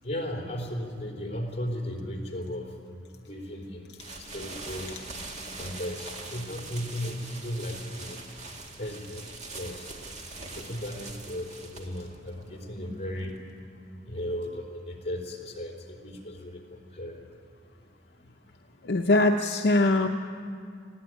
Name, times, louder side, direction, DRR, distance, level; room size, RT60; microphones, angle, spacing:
voice 1, 0.0-2.7 3.3-3.9 4.2-4.9 5.6-8.2 8.8-9.2 9.5-9.9 10.6-13.3 14.1-16.6 16.9-17.2, left 1 dB, 35° left, 0 dB, 3.4 m, -35 dB
sound 1, 4.0-13.6, right 3 dB, 40° right, 2.1 m, -42 dB
voice 2, 18.8-20.1, left 2 dB, 65° left, 4 dB, 0.7 m, -22 dB
20.5 x 16.0 x 9.1 m, 2.3 s
head